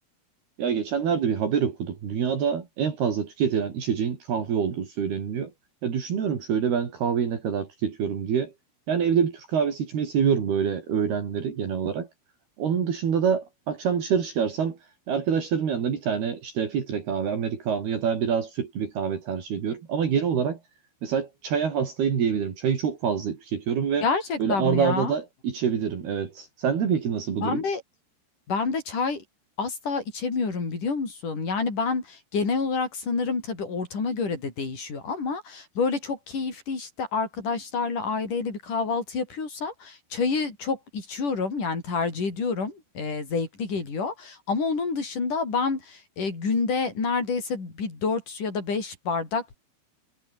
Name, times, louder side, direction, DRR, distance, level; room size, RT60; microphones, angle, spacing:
voice 1, 0.6-5.5 5.8-8.5 8.9-12.1 12.6-14.8 15.1-20.6 21.0-24.1 24.4-27.6, right 7 dB, 60° right, 5.3 m, -26 dB
voice 2, 24.0-25.1 27.4-27.8 28.5-29.2 29.6-49.6, left 4 dB, 45° left, 7.8 m, -28 dB
omnidirectional pair, 5.2 m